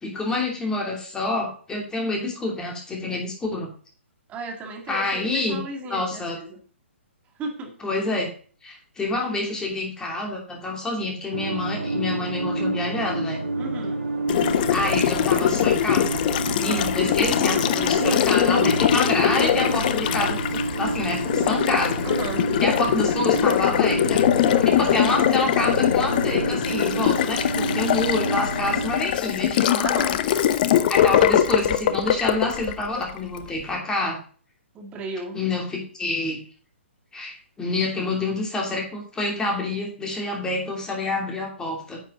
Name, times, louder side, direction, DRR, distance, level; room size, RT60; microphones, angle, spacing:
voice 1, 0.0-3.7 4.9-5.6 5.9-6.4 7.8-8.3 8.6-13.4 14.7-16.2 16.6-22.0 22.6-24.2 24.6-29.9 30.9-34.2 35.3-36.4 37.1-42.0, left 2 dB, 10° left, 0 dB, 2.8 m, -27 dB
voice 2, 4.3-6.6 7.4-7.8 13.5-14.0 16.6-16.9 22.0-22.5 24.4-24.7 29.8-30.2 31.0-31.4 34.7-35.4, right 2 dB, 20° right, 3 dB, 1.9 m, -34 dB
sound 1, 11.3-29.0, right 2 dB, 70° right, 2.1 m, -29 dB
Water tap faucet, 14.3-33.4, left 10 dB, 40° left, 0.7 m, -22 dB
9.8 x 7.5 x 3.8 m, 0.41 s
figure-of-eight pair, 130°, 7 cm